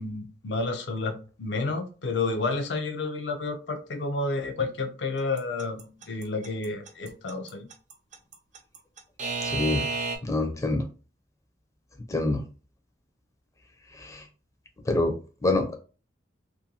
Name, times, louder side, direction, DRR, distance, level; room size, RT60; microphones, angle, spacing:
voice 1, 0.0-7.7, left 3 dB, 75° left, 0.5 m, -30 dB
Alarm / Clock, 5.4-10.2, right 4 dB, 45° right, 0.5 m, -31 dB
voice 2, 10.3-10.8 12.1-12.4 14.0-14.2 14.9-15.1 15.4-15.8, left 2 dB, 20° left, 0.5 m, -25 dB
2.6 x 2.6 x 2.8 m
head